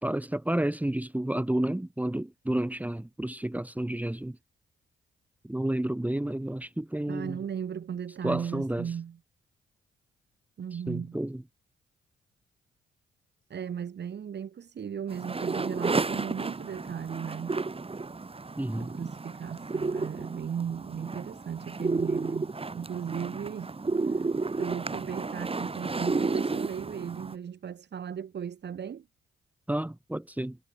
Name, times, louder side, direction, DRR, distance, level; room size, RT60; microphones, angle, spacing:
voice 1, 0.0-4.4 5.4-7.4 8.2-8.9 10.9-11.4 18.6-18.9 29.7-30.6, right 1 dB, 5° right, 1.8 m, -30 dB
voice 2, 7.1-9.2 10.6-11.2 13.5-17.7 18.8-23.7 24.0-24.2 24.6-29.1, right 8 dB, 55° right, 3.3 m, -36 dB
sound 1, 15.1-27.3, right 3 dB, 30° right, 4.5 m, -32 dB
supercardioid pair, 65°, 21 cm